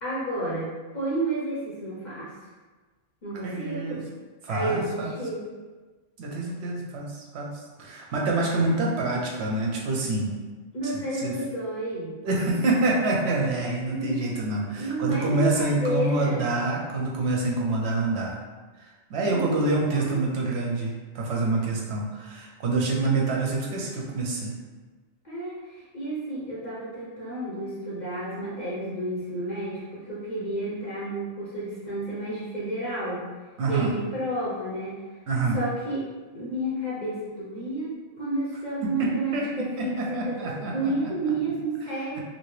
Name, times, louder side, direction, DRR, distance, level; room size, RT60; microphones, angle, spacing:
voice 1, 0.0-0.7 0.9-2.5 3.2-4.0 4.5-5.5 10.7-12.1 13.9-14.4 14.8-16.5 19.2-20.2 25.2-33.3 33.7-35.0 35.5-36.0 36.3-42.2, right 1 dB, 45° left, -7 dB, 0.8 m, -31 dB
voice 2, 3.4-4.0 4.4-5.1 6.2-10.4 10.8-11.3 12.2-18.4 18.8-24.6 33.6-33.9 35.3-35.6 38.8-39.5 39.8-41.1, right 2 dB, 70° right, -1 dB, 0.8 m, -27 dB
2.7 x 2.7 x 3.1 m, 1.3 s
omnidirectional pair, 1.2 m